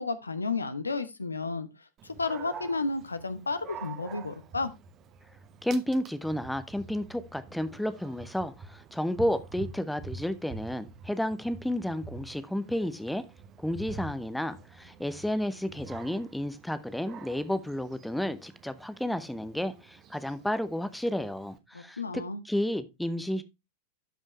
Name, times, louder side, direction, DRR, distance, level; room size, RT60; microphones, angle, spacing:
voice 1, 0.0-1.7 2.0-4.7 21.7-22.4, left 3 dB, 80° left, 0.9 m, -32 dB
Dog, 2.0-21.6, right 5 dB, 30° right, 1.1 m, -47 dB
voice 2, 5.6-13.2 13.6-23.4, left 1 dB, ahead, 0.9 m, -32 dB
12.0 x 5.5 x 3.1 m
figure-of-eight pair, 90°, 0 cm